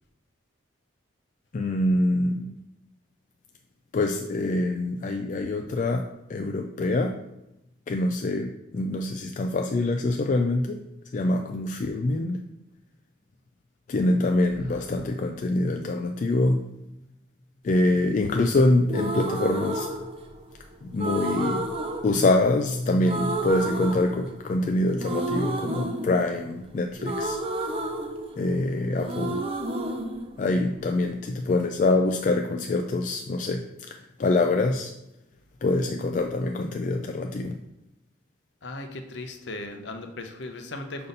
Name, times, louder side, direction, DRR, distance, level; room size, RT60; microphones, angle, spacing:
voice 1, 1.5-2.5 3.9-7.2 7.9-10.8 11.1-12.4 13.9-16.6 17.6-19.9 20.8-21.7 22.0-27.7 28.4-29.4 30.4-34.9 35.6-37.6, left 2 dB, 40° left, 4 dB, 0.3 m, -25 dB
sound 1, 18.9-20.5 21.0-22.7 23.0-24.6 25.0-28.7 29.0-31.0, right 1 dB, 30° right, 0.6 m, -31 dB
voice 2, 38.6-41.1, left 2 dB, 60° left, 6 dB, 0.7 m, -38 dB
5.6 x 4.0 x 5.2 m, 0.89 s
head